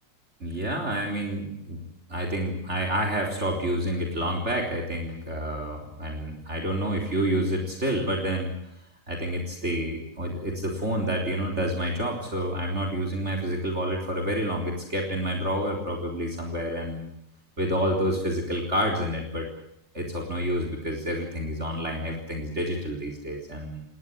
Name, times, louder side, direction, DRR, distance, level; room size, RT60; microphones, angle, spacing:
voice 1, 0.4-1.8 2.1-8.6 9.1-17.1 17.6-19.5 19.9-23.8, equal, 40° right, 3 dB, 4.2 m, -28 dB
20.0 x 18.5 x 9.7 m, 0.77 s
omnidirectional pair, 1.9 m